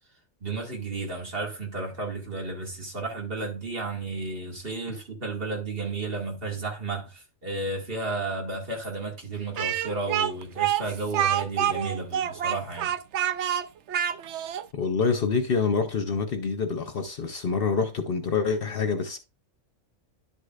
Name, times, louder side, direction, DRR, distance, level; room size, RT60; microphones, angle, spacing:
voice 1, 0.4-12.9, right 3 dB, 50° right, 2.3 m, -33 dB
Speech, 9.6-14.7, right 10 dB, 70° right, 0.8 m, -27 dB
voice 2, 14.7-19.2, left 5 dB, 55° left, 0.8 m, -26 dB
11.0 x 6.5 x 2.4 m
omnidirectional pair, 1.3 m